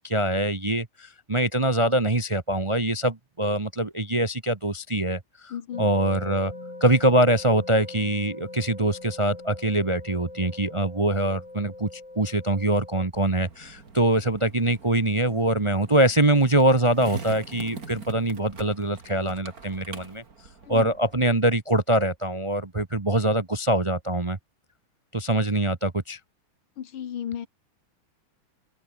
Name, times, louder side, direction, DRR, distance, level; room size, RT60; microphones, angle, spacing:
voice 1, 0.0-6.5 6.8-20.2 20.7-24.4 25.1-26.2, right 1 dB, 25° right, 0.7 m, -24 dB
voice 2, 5.5-5.9 20.6-20.9 26.8-27.5, left 9 dB, 85° left, 2.3 m, -34 dB
sound 1, 5.7-13.1, left 2 dB, 15° left, 2.5 m, -42 dB
Skateboard, 13.1-21.1, right 4 dB, 45° right, 3.1 m, -43 dB
omnidirectional pair, 2.3 m